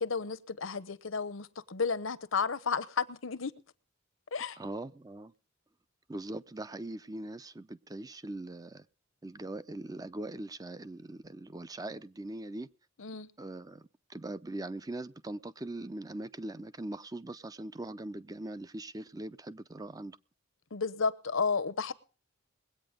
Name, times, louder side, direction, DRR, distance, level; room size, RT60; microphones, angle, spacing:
voice 1, 0.0-3.5 4.3-4.6 13.0-13.3 20.7-21.9, left 5 dB, 75° left, 0.9 m, -32 dB
voice 2, 4.5-5.3 6.1-8.9 9.2-12.7 13.4-20.2, right 1 dB, 20° right, 0.6 m, -41 dB
21.5 x 8.7 x 5.1 m
head